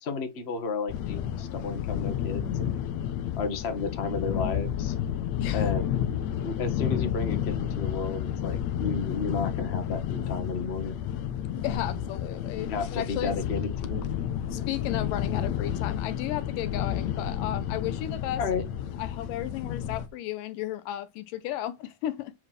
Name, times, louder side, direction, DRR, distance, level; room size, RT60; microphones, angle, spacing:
voice 1, 0.0-2.8 3.4-4.9 5.5-10.9 11.7-11.8 12.6-14.1 18.4-18.6, left 4 dB, 25° left, 1.4 m, -33 dB
sound 1, 0.9-20.1, left 10 dB, 70° left, 1.8 m, -31 dB
voice 2, 11.6-13.4 14.5-18.4 19.0-22.3, left 13 dB, 85° left, 2.5 m, -34 dB
8.7 x 4.8 x 4.5 m
omnidirectional pair, 3.9 m